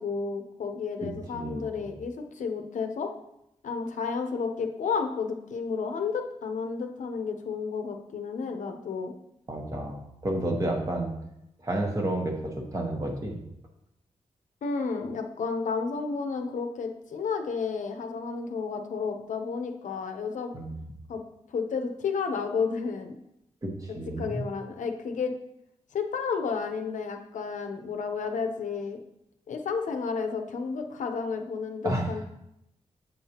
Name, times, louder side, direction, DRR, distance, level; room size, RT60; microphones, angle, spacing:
voice 1, 0.0-3.1 3.6-9.1 14.6-20.5 21.1-21.2 21.5-23.2 23.9-25.4 25.9-29.0 29.5-32.2, left 5 dB, 85° left, 5 dB, 0.7 m, -31 dB
voice 2, 1.0-1.8 9.5-11.1 11.6-13.4 20.5-20.9 23.6-24.4 31.8-32.1, right 1 dB, 25° right, 1 dB, 1.1 m, -31 dB
7.8 x 5.7 x 2.9 m, 0.81 s
wide cardioid pair, 170°, 13 cm